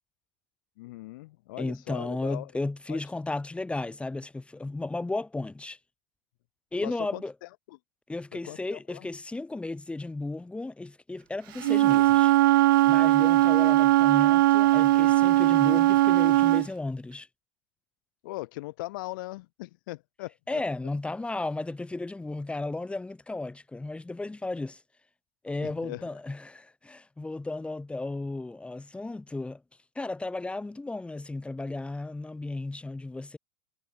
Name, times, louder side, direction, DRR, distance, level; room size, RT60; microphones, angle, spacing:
voice 1, 0.8-2.5 2.9-3.0 6.8-7.8 8.3-9.1 18.2-20.6 25.6-26.2, left 20 dB, 60° left, 4.3 m, -40 dB
voice 2, 1.6-5.8 6.7-7.3 8.1-12.3 12.9-17.3 20.5-24.8 25.4-29.6 30.0-33.4, left 2 dB, 10° left, 7.0 m, -34 dB
Wind instrument woodwind instrument, 11.6-16.7, right 16 dB, 65° right, 1.3 m, -20 dB
figure-of-eight pair, 85°, 12 cm